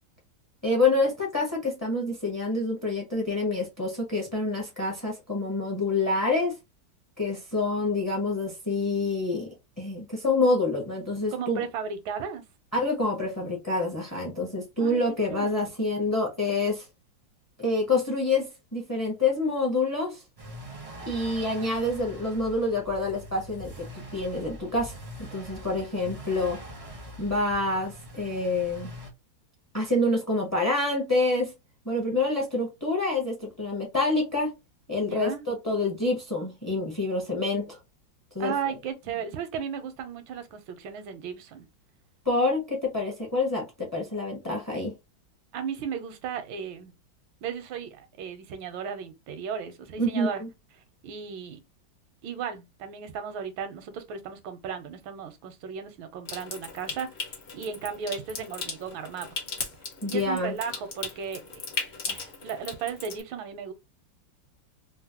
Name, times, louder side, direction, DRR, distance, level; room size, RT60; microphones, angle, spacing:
voice 1, 0.6-6.6 7.2-9.5 9.8-11.6 12.7-16.9 17.6-20.2 21.0-23.8 24.1-25.0 25.3-26.6 27.2-28.9 29.7-31.5 31.8-34.5 34.9-37.8 38.3-38.5 42.2-44.9 50.0-50.5 60.0-60.6, left 2 dB, 20° left, 0.5 m, -27 dB
voice 2, 11.3-12.4 14.8-15.0 15.3-15.6 35.0-35.4 38.4-41.6 45.5-46.9 47.4-50.4 51.0-51.6 52.2-59.4 60.1-61.7 62.1-63.7, right 7 dB, 85° right, 1.5 m, -35 dB
sound 1, 20.4-29.1, equal, 40° right, 0.4 m, -43 dB
Water tap faucet / Sink (filling or washing) / Trickle dribble, 56.2-63.2, left 4 dB, 50° left, 0.8 m, -37 dB
3.8 x 2.1 x 2.8 m
omnidirectional pair, 2.1 m